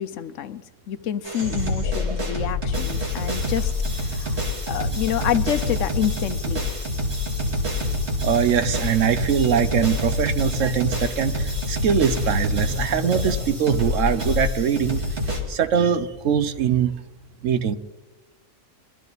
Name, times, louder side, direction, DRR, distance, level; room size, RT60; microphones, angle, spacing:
voice 1, 0.0-6.6, left 10 dB, 70° left, 12 dB, 1.0 m, -28 dB
sound 1, 1.2-15.4, left 2 dB, 50° right, 2.7 m, -26 dB
voice 2, 8.2-15.0 15.5-16.9 17.4-17.8, right 8 dB, 70° right, 12 dB, 1.1 m, -22 dB
21.5 x 13.0 x 4.0 m, 1.1 s
omnidirectional pair, 1.5 m